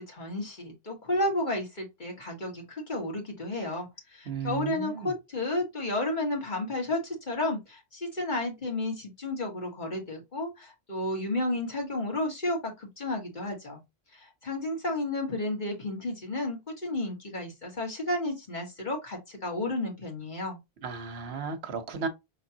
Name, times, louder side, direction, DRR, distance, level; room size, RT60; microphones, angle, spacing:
voice 1, 0.0-13.8 14.1-20.6, left 2 dB, 45° left, 1.7 m, -32 dB
voice 2, 4.3-5.1 20.8-22.1, right 5 dB, 75° right, 1.1 m, -34 dB
5.6 x 3.3 x 2.8 m
omnidirectional pair, 1.1 m